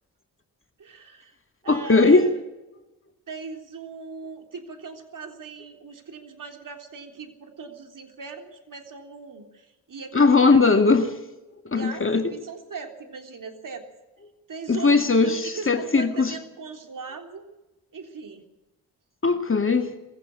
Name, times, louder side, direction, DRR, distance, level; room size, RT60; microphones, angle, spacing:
voice 1, 0.8-1.3 1.6-2.3 3.3-10.8 11.8-13.9 14.5-14.9 15.2-17.6 17.9-18.4, right 4 dB, 50° right, 3.6 m, -39 dB
voice 2, 1.7-2.3 10.1-11.1 11.6-12.2 14.7-16.3 19.2-19.9, left 4 dB, 30° left, 2.2 m, -19 dB
20.5 x 16.0 x 8.6 m
hypercardioid pair, 40°, 40 cm